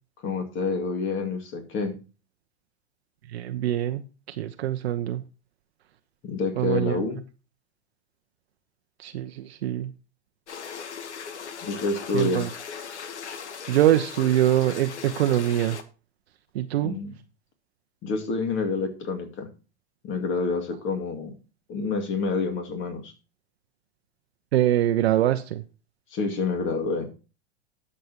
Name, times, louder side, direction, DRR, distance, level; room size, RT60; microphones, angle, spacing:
voice 1, 0.2-1.9 6.2-7.2 11.6-12.5 16.8-17.2 18.0-19.5 20.0-21.3 21.7-23.1 26.1-27.1, left 4 dB, 35° left, 2.3 m, -28 dB
voice 2, 3.3-5.2 6.6-7.0 9.0-9.9 12.1-12.5 13.7-15.8 16.5-17.0 24.5-25.6, right 12 dB, 60° right, 0.8 m, -24 dB
sound 1, 10.5-15.8, left 6 dB, 75° left, 1.2 m, -38 dB
19.5 x 6.6 x 2.9 m
figure-of-eight pair, 95°, 35 cm